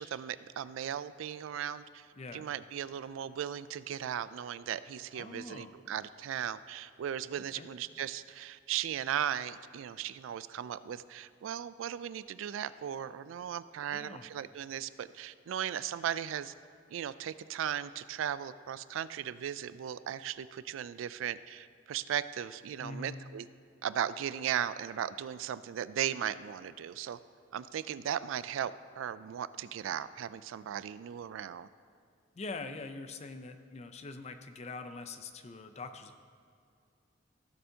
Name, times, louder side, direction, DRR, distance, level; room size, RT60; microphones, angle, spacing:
voice 1, 0.0-2.1 2.3-16.5 16.9-23.5 23.8-27.2 27.5-31.7, right 9 dB, 85° right, 15 dB, 0.3 m, -37 dB
voice 2, 2.2-2.5 5.1-5.7 7.5-7.7 13.9-14.3 22.8-23.2 32.3-36.2, left 3 dB, 35° left, 8 dB, 0.5 m, -43 dB
15.5 x 6.9 x 2.8 m, 2.4 s
head